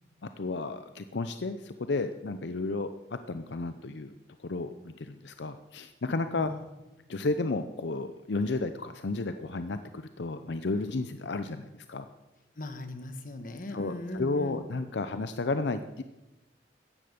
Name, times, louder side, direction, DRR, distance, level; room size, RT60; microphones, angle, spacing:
voice 1, 0.2-4.1 4.4-6.5 7.1-12.1 13.7-16.0, left 3 dB, 75° left, 10 dB, 0.6 m, -32 dB
voice 2, 12.6-14.6, left 1 dB, 45° left, 8 dB, 1.4 m, -38 dB
15.0 x 10.0 x 6.8 m, 1.0 s
head